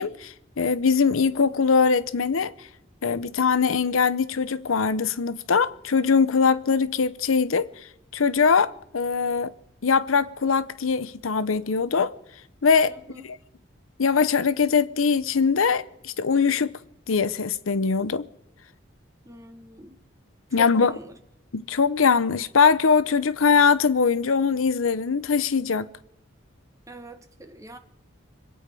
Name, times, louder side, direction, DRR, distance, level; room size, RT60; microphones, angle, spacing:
voice 1, 0.0-2.5 3.0-7.7 8.1-9.5 9.8-12.2 12.6-12.9 14.0-16.8 17.1-18.3 20.5-20.9 21.5-25.9, left 5 dB, 90° left, 0.7 m, -22 dB
voice 2, 12.9-13.3 19.2-20.0 20.6-21.1 26.9-27.8, equal, 15° right, 1.0 m, -43 dB
25.5 x 9.1 x 5.4 m
head